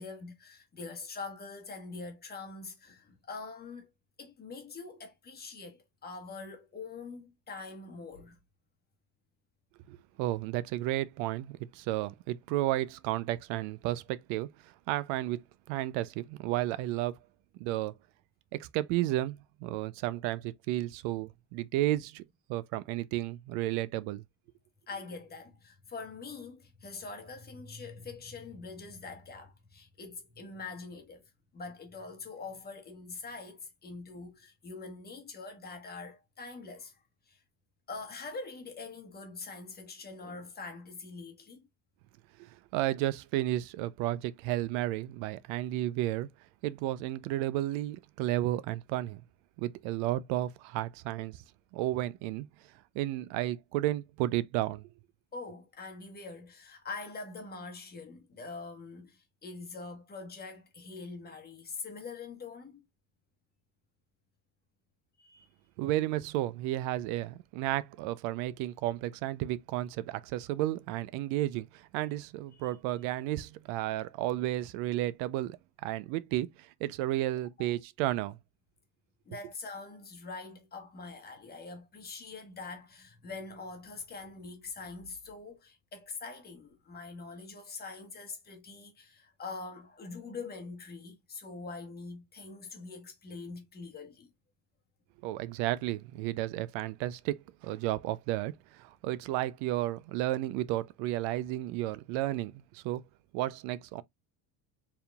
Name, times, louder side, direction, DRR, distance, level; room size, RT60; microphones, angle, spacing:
voice 1, 0.0-3.9 4.2-8.4 24.9-37.0 37.3-37.4 37.9-41.7 55.3-62.9 65.2-65.5 72.6-72.7 77.6-77.7 79.2-94.3, left 4 dB, 20° left, 1.2 m, -44 dB
voice 2, 9.9-15.4 15.7-17.2 17.6-17.9 18.5-22.2 22.5-24.2 42.4-46.3 46.6-49.2 49.6-51.4 51.7-52.5 52.9-54.9 65.8-78.4 95.2-103.0 103.3-104.0, right 15 dB, 85° right, 0.6 m, -32 dB
4.6 x 3.6 x 2.3 m
cardioid pair, 155°, 45 cm